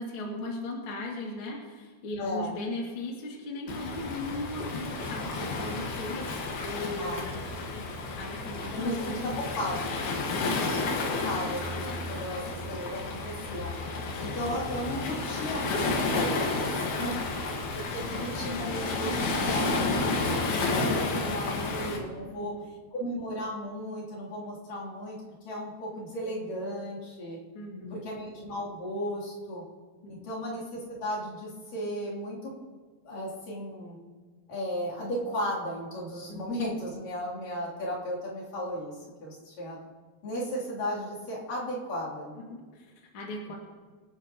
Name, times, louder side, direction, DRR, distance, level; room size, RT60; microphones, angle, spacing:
voice 1, 0.0-9.4 10.2-10.5 16.9-17.3 22.2-22.8 27.5-28.1 30.0-30.3 36.3-36.4 42.5-43.6, left 2 dB, 40° left, -3 dB, 2.7 m, -38 dB
voice 2, 2.2-2.6 7.0-7.3 8.7-10.0 10.3-12.4 12.7-13.7 14.2-16.7 17.0-17.4 17.7-22.5 22.9-25.2 25.4-27.4 27.9-29.6 30.1-32.5 33.0-34.0 34.5-38.9 39.2-39.8 40.2-42.4, equal, 60° left, -7 dB, 4.7 m, -35 dB
Waves surf, 3.7-22.0, left 3 dB, 80° left, 3.5 m, -31 dB
26.0 x 9.6 x 3.0 m, 1.5 s
omnidirectional pair, 4.3 m